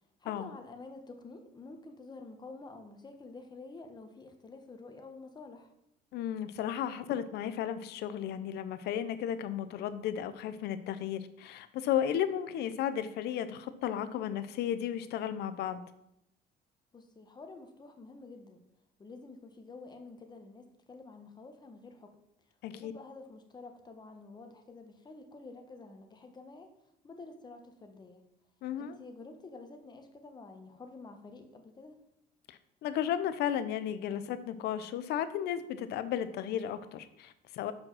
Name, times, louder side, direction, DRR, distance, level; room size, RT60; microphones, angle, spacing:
voice 1, 0.2-5.7 16.9-18.6 19.0-22.1 22.7-26.7 27.0-28.2 28.8-32.0, left 3 dB, 25° left, 5 dB, 1.1 m, -49 dB
voice 2, 6.1-15.8 22.6-22.9 28.6-29.0 32.5-37.7, left 10 dB, 75° left, 12 dB, 0.7 m, -34 dB
5.8 x 5.2 x 6.1 m, 0.81 s
cardioid pair, 110°, 17 cm